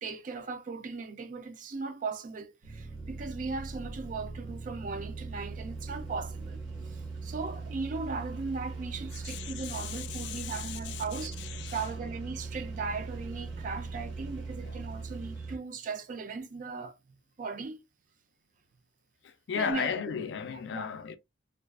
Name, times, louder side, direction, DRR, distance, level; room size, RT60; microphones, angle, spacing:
voice 1, 0.0-6.6 6.9-11.4 11.7-17.0 17.4-17.8 19.5-19.9 20.5-20.9, right 4 dB, 45° right, 0.3 m, -38 dB
sound 1, 2.6-15.6, right 4 dB, 75° right, 0.9 m, -40 dB
voice 2, 9.2-11.8 14.6-14.8 19.2-21.2, left 7 dB, 65° left, 0.3 m, -36 dB
2.4 x 2.2 x 2.3 m
head